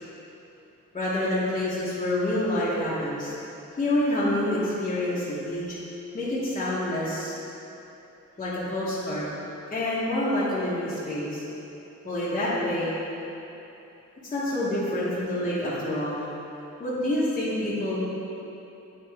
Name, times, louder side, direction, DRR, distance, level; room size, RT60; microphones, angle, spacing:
voice 1, 0.9-3.3 3.8-5.8 6.1-7.4 8.4-9.3 9.7-11.4 12.0-13.0 14.3-16.3 16.8-18.0, left 1 dB, 25° left, -11 dB, 1.1 m, -27 dB
9.3 x 4.2 x 3.4 m, 3.0 s
wide cardioid pair, 170°, 29 cm